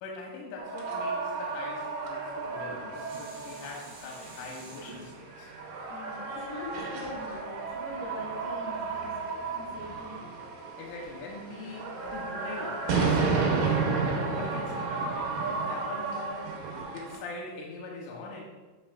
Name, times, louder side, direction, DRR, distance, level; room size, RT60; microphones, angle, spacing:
voice 1, 0.0-5.5 10.8-13.9 14.2-18.4, left 3 dB, 90° left, -1 dB, 3.2 m, -42 dB
sound 1, 0.6-17.2, right 4 dB, 75° right, 3.3 m, -32 dB
Dishes pots and pans, 2.3-7.6 8.1-8.2, right 1 dB, 55° right, 2.1 m, -50 dB
voice 2, 5.6-9.2 9.5-10.8, left 2 dB, 70° left, -2 dB, 4.5 m, -44 dB
9.0 x 5.1 x 2.3 m, 1.3 s
omnidirectional pair, 5.7 m